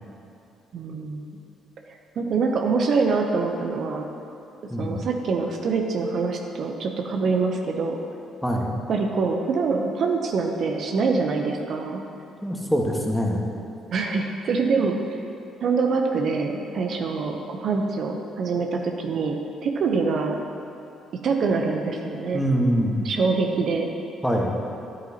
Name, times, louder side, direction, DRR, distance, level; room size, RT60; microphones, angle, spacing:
voice 1, 0.7-1.3 1.9-4.1 4.8-8.0 8.9-12.0 13.9-15.2 15.6-20.4 21.2-22.4 23.0-23.9, right 4 dB, 60° right, 3 dB, 0.6 m, -25 dB
voice 2, 8.4-8.8 12.4-13.4 22.3-23.1 24.2-24.5, equal, 5° left, -1 dB, 1.4 m, -24 dB
10.5 x 8.0 x 2.8 m, 2.7 s
hypercardioid pair, 50°, 0 cm